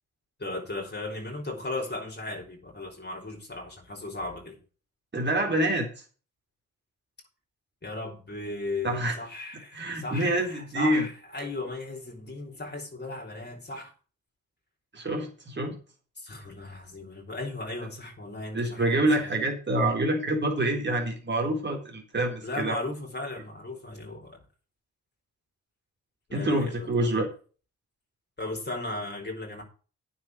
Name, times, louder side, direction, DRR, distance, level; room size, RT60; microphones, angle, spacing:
voice 1, 0.4-4.6 7.8-13.9 16.2-19.3 22.4-24.4 26.3-27.2 28.4-29.6, left 2 dB, 30° left, 1 dB, 4.3 m, -36 dB
voice 2, 5.1-5.9 8.8-9.2 9.7-11.1 14.9-15.8 18.5-22.8 26.3-27.3, right 1 dB, 35° right, 0 dB, 3.9 m, -26 dB
9.4 x 6.6 x 8.0 m, 0.38 s
hypercardioid pair, 40°, 33 cm